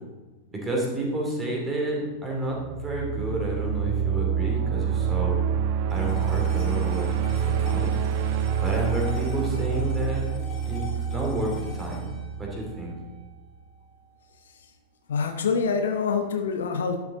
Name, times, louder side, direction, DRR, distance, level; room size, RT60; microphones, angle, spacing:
voice 1, 0.5-5.4 5.9-7.9 8.6-10.2 10.6-12.1 12.4-12.9, right 1 dB, 15° right, -2 dB, 3.0 m, -30 dB
sound 1, 2.5-13.3, right 8 dB, 50° right, 0.5 m, -27 dB
sound 2, 5.9-14.4, left 4 dB, 30° left, 2.9 m, -44 dB
voice 2, 15.1-17.0, left 5 dB, 65° left, 6 dB, 0.9 m, -25 dB
12.0 x 7.2 x 3.8 m, 1.2 s
figure-of-eight pair, 90°, 0 cm